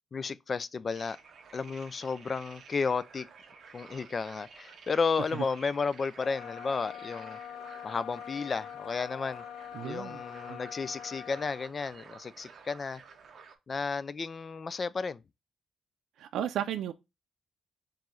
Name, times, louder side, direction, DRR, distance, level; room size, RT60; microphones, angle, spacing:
voice 1, 0.1-1.2 1.5-3.3 3.7-7.4 7.8-9.4 9.8-13.0 13.7-15.2, left 5 dB, 30° left, 0.3 m, -33 dB
sound 1, 0.9-13.6, right 5 dB, 45° right, 0.9 m, -53 dB
sound 2, 6.1-11.7, left 9 dB, 90° left, 0.7 m, -44 dB
voice 2, 9.7-10.2 10.5-10.6 16.2-16.9, right 10 dB, 85° right, 0.4 m, -34 dB
4.5 x 3.1 x 3.7 m
cardioid pair, 170°, 0 cm